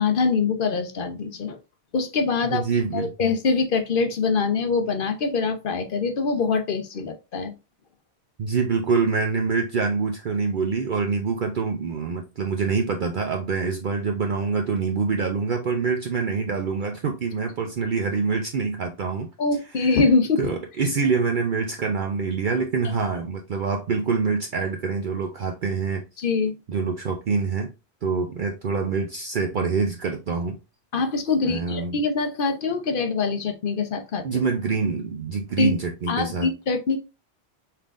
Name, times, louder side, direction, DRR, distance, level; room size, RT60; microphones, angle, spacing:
voice 1, 0.0-1.6 1.9-2.6 2.9-7.5 19.4-20.5 26.2-26.5 30.9-34.2 35.6-35.8 36.1-37.0, left 4 dB, 55° left, 0.9 m, -24 dB
voice 2, 2.5-3.1 8.4-19.3 19.8-20.0 20.4-26.0 26.7-27.7 28.0-30.6 31.4-32.0 34.2-36.5, right 5 dB, 55° right, 0.7 m, -25 dB
5.8 x 3.6 x 2.5 m
omnidirectional pair, 1.1 m